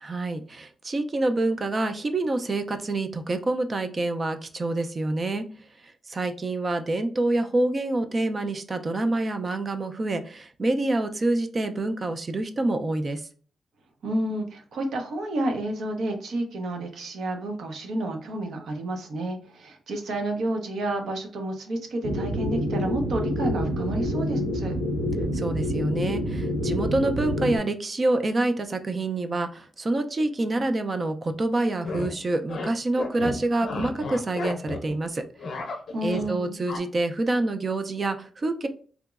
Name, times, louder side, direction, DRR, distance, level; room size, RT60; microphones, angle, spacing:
voice 1, 0.0-5.5 5.8-13.2 25.3-35.2 36.0-38.7, right 2 dB, 30° right, 8 dB, 0.4 m, -27 dB
voice 2, 14.0-24.7 35.9-36.6, right 1 dB, 80° right, 4 dB, 0.8 m, -30 dB
sound 1, 22.0-27.6, equal, 45° right, 1.4 m, -27 dB
sound 2, 31.6-32.1 32.5-32.7 33.0-35.0 35.2-36.3 36.7-36.8, left 3 dB, 55° left, 0.6 m, -33 dB
3.6 x 2.9 x 2.4 m, 0.43 s
wide cardioid pair, 150°, 0 cm